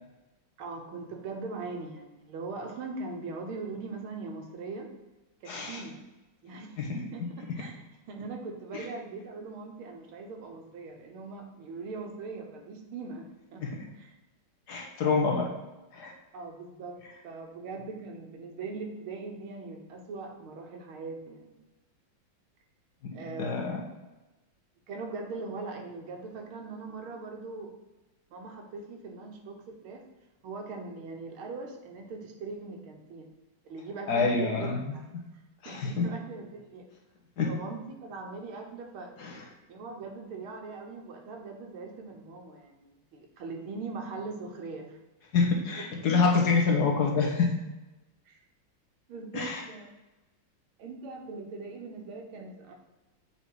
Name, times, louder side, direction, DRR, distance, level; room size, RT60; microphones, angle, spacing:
voice 1, 0.6-4.9 5.4-6.0 6.4-14.1 15.0-15.5 16.3-21.6 23.1-23.8 24.9-27.7 28.3-30.1 30.4-33.3 33.7-35.0 35.7-36.9 37.5-39.1 39.7-45.0 45.4-45.6 46.0-46.1 48.3-48.4 49.1-49.9 50.8-52.7, right 3 dB, 90° right, 3 dB, 1.9 m, -41 dB
voice 2, 5.5-5.8 6.8-6.9 8.7-8.8 13.6-13.8 14.7-15.4 15.9-16.1 23.0-23.8 34.1-34.9 35.6-36.0 37.4-37.5 39.2-39.4 45.3-47.5 49.3-49.6, left 4 dB, 55° left, 1 dB, 1.5 m, -27 dB
7.5 x 4.2 x 4.7 m, 1.1 s
omnidirectional pair, 2.2 m